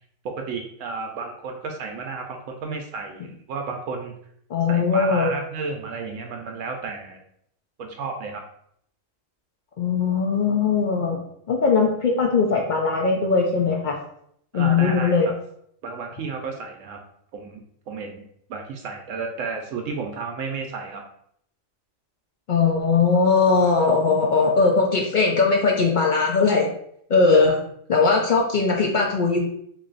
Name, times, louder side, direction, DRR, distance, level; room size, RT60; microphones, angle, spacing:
voice 1, 0.2-4.1 4.7-7.2 7.8-8.4 14.5-15.1 15.8-17.0 17.3-18.2 18.5-21.0 27.3-27.6, right 4 dB, 75° right, 3 dB, 0.9 m, -32 dB
voice 2, 4.5-5.3 9.8-11.2 11.5-14.0 14.5-15.3 22.5-26.7 27.1-27.5 27.9-29.4, left 4 dB, 65° left, 0 dB, 0.5 m, -20 dB
3.1 x 2.6 x 3.8 m, 0.70 s
omnidirectional pair, 1.4 m